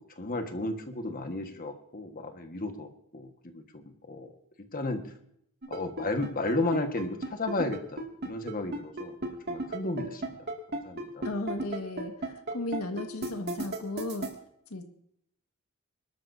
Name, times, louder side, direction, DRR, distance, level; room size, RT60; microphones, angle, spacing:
voice 1, 0.0-4.3 4.7-5.0 5.7-10.2 10.8-11.3, left 2 dB, 40° left, 5 dB, 1.6 m, -33 dB
sound 1, 5.6-14.3, right 2 dB, 50° right, 2.3 m, -34 dB
voice 2, 11.2-14.3 14.7-14.9, left 2 dB, 80° left, 5 dB, 1.7 m, -35 dB
24.5 x 13.0 x 2.8 m, 0.73 s
head